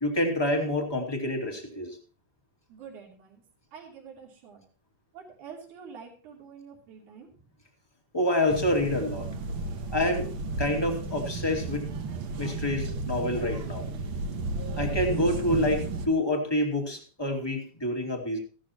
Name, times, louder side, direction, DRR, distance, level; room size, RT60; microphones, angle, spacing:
voice 1, 0.0-2.0 8.1-9.3 9.9-10.3 10.6-11.9 12.4-13.9 14.8-18.4, left 1 dB, 10° left, 2 dB, 1.9 m, -27 dB
voice 2, 2.7-3.4 3.7-4.6 5.1-7.3, right 6 dB, 70° right, -2 dB, 4.4 m, -46 dB
sound 1, 8.5-16.1, right 3 dB, 55° right, 1.6 m, -33 dB
16.0 x 12.5 x 2.9 m, 0.38 s
omnidirectional pair, 3.6 m